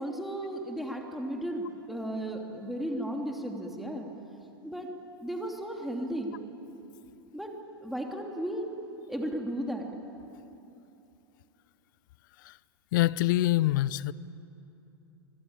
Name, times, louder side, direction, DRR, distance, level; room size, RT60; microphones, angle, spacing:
voice 1, 0.0-4.1 4.6-4.9 5.2-6.4 7.3-8.7 9.1-9.9, right 1 dB, ahead, 3.0 m, -35 dB
voice 2, 12.9-14.1, left 16 dB, 50° left, 0.6 m, -25 dB
25.5 x 25.5 x 8.8 m
figure-of-eight pair, 95°, 13 cm